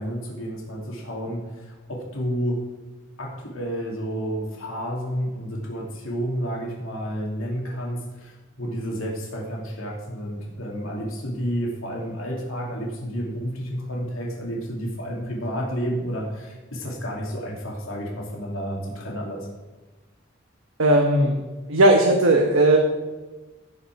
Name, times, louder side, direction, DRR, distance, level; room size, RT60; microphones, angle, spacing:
voice 1, 0.0-2.6 3.2-19.5, equal, 85° left, -2 dB, 2.7 m, -30 dB
voice 2, 20.8-21.4 21.7-22.8, right 1 dB, 80° right, 1 dB, 1.2 m, -17 dB
15.5 x 5.6 x 4.7 m, 1.2 s
head